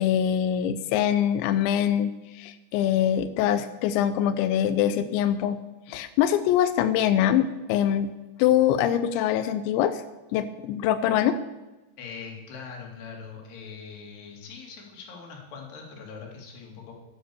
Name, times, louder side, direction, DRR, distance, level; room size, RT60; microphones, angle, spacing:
voice 1, 0.0-5.6 5.9-8.1 8.4-10.0 10.3-11.4, left 10 dB, 85° left, 11 dB, 2.6 m, -23 dB
voice 2, 12.0-16.9, left 5 dB, 55° left, 0 dB, 4.2 m, -42 dB
13.0 x 10.5 x 7.0 m, 1.1 s
omnidirectional pair, 6.0 m